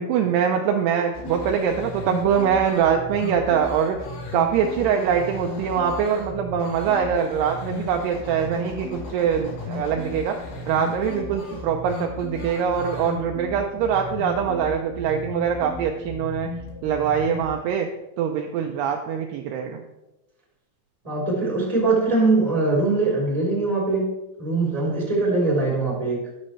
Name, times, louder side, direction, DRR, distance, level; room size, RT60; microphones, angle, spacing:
voice 1, 0.0-4.0 4.3-10.4 10.7-16.5 16.8-17.9 18.2-19.8, right 7 dB, 80° right, 3 dB, 2.4 m, -23 dB
sound 1, 1.1-17.5, left 3 dB, 60° left, 3.8 m, -35 dB
voice 2, 21.0-24.1 24.4-26.3, right 3 dB, 10° right, -3 dB, 2.9 m, -22 dB
12.0 x 11.5 x 3.2 m, 0.94 s
omnidirectional pair, 5.5 m